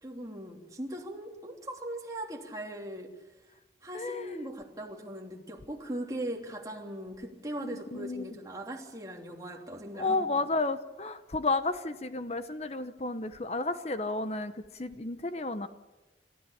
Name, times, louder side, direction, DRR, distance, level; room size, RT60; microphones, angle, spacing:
voice 1, 0.0-3.1 3.8-10.3, right 1 dB, 20° right, 0 dB, 3.2 m, -39 dB
voice 2, 3.9-4.4 7.6-8.3 9.9-15.7, left 3 dB, 35° left, 11 dB, 0.9 m, -32 dB
28.5 x 14.5 x 8.6 m, 1.1 s
head